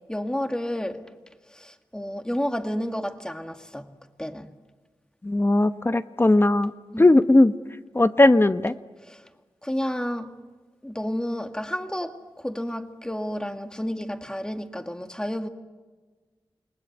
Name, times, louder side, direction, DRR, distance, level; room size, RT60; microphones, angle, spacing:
voice 1, 0.1-1.1 1.5-3.9 4.2-4.5 6.9-7.1 9.1-9.2 9.6-10.3 10.8-15.5, equal, 10° left, 2.0 m, -31 dB
voice 2, 5.2-6.7 7.0-7.5 7.9-8.7, left 2 dB, 25° left, 1.0 m, -18 dB
29.0 x 19.5 x 9.4 m
wide cardioid pair, 65°, 9 cm